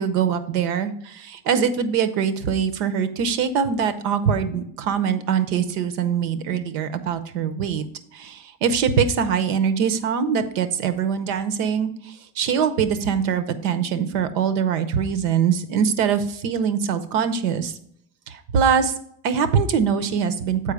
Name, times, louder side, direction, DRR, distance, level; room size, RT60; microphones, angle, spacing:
voice 1, 0.0-7.8 8.1-17.7 18.3-18.9 19.2-20.7, right 7 dB, 85° right, 10 dB, 0.9 m, -23 dB
7.2 x 4.7 x 4.8 m, 0.68 s
supercardioid pair, 110°, 47 cm